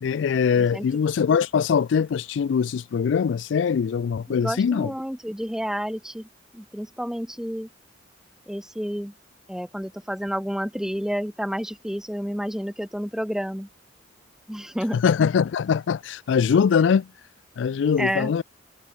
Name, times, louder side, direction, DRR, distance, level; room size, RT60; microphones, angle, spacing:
voice 1, 0.0-4.9 14.9-17.1 17.6-18.4, left 6 dB, 70° left, 0.3 m, -22 dB
voice 2, 4.3-7.7 8.5-9.1 9.5-13.7 14.5-15.0 18.0-18.3, equal, 5° right, 2.0 m, -30 dB
head